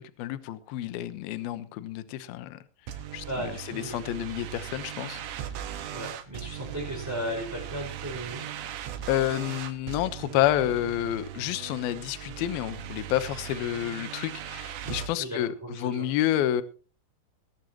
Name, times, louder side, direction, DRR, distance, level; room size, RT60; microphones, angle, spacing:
voice 1, 0.0-2.6 3.1-5.2 9.1-16.6, left 13 dB, 75° left, 12 dB, 2.4 m, -29 dB
sound 1, 2.9-15.1, right 10 dB, 80° right, 3.8 m, -39 dB
voice 2, 3.2-4.2 4.5-4.6 5.9-8.5 15.2-16.1, equal, 5° right, -1 dB, 4.2 m, -36 dB
20.0 x 13.0 x 3.0 m, 0.37 s
omnidirectional pair, 5.5 m